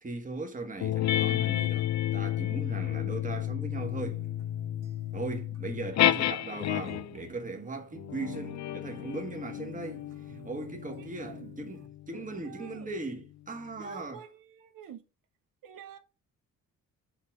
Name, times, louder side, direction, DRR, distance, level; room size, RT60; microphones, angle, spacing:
voice 1, 0.0-4.2 5.1-11.8 12.1-14.2, right 3 dB, 25° right, 1.5 m, -38 dB
sound 1, 0.8-7.2 8.0-12.9, left 13 dB, 60° left, 0.5 m, -31 dB
sound 2, 3.8-11.9, right 9 dB, 50° right, 0.7 m, -52 dB
voice 2, 11.0-11.5 12.1-12.9 13.8-15.0 15.6-16.0, right 8 dB, 85° right, 0.9 m, -48 dB
5.6 x 3.8 x 6.0 m
cardioid pair, 120°, 32 cm